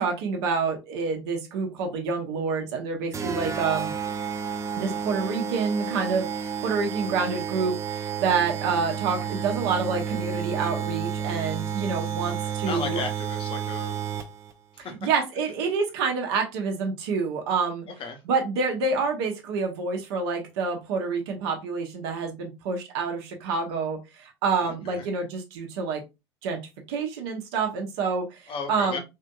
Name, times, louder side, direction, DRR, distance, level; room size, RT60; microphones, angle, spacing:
voice 1, 0.0-3.9 4.8-13.0 14.8-17.9 18.3-26.0 26.4-26.6 26.9-29.0, right 5 dB, 65° right, 3 dB, 0.8 m, -28 dB
sound 1, 3.1-14.5, right 7 dB, 20° right, 0.5 m, -31 dB
voice 2, 12.2-14.0 14.7-15.0 18.0-18.2 24.6-25.1 28.5-29.0, left 5 dB, 40° left, 5 dB, 0.9 m, -36 dB
3.5 x 2.6 x 2.2 m, 0.24 s
figure-of-eight pair, 75°, 14 cm